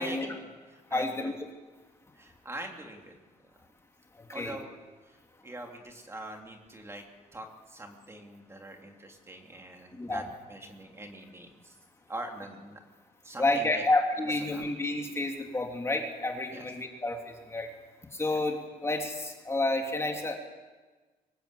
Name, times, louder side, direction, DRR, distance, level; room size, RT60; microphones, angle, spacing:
voice 1, 0.0-1.3 2.1-3.2 4.3-4.7 5.0-7.0 7.3-11.8 12.1-12.8 13.2-13.8 14.2-14.7 16.5-16.7 18.3-18.4, right 1 dB, 20° right, 2 dB, 3.1 m, -43 dB
voice 2, 0.9-1.3 4.1-4.6 9.9-10.2 13.4-17.7 18.1-20.4, left 2 dB, 20° left, 2 dB, 2.7 m, -30 dB
24.5 x 19.5 x 8.4 m, 1.3 s
cardioid pair, 145°, 15 cm